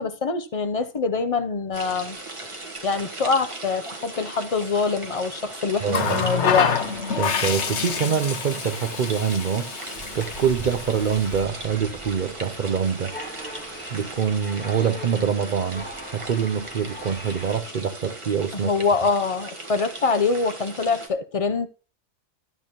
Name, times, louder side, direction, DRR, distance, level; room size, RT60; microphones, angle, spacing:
voice 1, 0.0-2.2 2.8-6.8 18.5-21.7, left 4 dB, 35° left, 0.6 m, -24 dB
sound 1, 1.7-21.1, right 2 dB, 25° right, 1.4 m, -38 dB
voice 2, 5.8-6.3 7.2-9.8 10.1-13.1 13.9-15.8 16.1-18.7, right 7 dB, 50° right, 0.6 m, -25 dB
Water tap faucet, 5.9-11.4 12.6-12.9, left 7 dB, 65° left, 1.2 m, -27 dB
sound 2, 9.9-17.6, equal, 10° left, 1.6 m, -40 dB
12.5 x 8.4 x 3.0 m
omnidirectional pair, 1.3 m